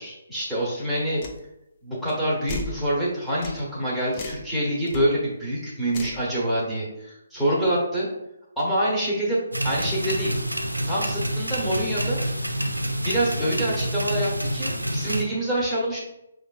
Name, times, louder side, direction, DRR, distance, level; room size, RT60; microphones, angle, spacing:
voice 1, 0.0-1.2 1.8-8.1 8.6-10.4 10.8-12.2 13.0-16.0, right 1 dB, ahead, -10 dB, 1.0 m, -26 dB
sound 1, 1.2-1.4 2.5-2.8 3.4-3.6 4.1-4.5 4.9-5.0 5.9-6.2, left 3 dB, 30° left, 0.5 m, -34 dB
sound 2, 9.5-15.2, equal, 90° right, 0.4 m, -27 dB
4.9 x 2.4 x 2.3 m, 0.87 s
figure-of-eight pair, 140°, 0 cm